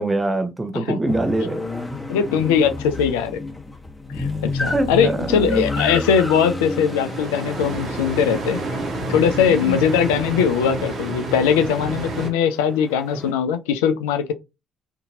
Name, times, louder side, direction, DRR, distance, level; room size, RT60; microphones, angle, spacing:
voice 1, 0.0-1.6 4.7-5.8 9.5-9.8 13.1-13.3, right 2 dB, 20° right, 0.9 m, -24 dB
sound 1, 1.1-10.0 12.3-13.3, left 2 dB, 15° left, 1.1 m, -31 dB
voice 2, 2.1-3.4 4.2-8.6 9.1-14.3, left 7 dB, 75° left, 0.3 m, -20 dB
sound 2, 6.6-12.3, right 2 dB, 50° right, 1.1 m, -29 dB
2.7 x 2.6 x 2.6 m
hypercardioid pair, 50°, 0 cm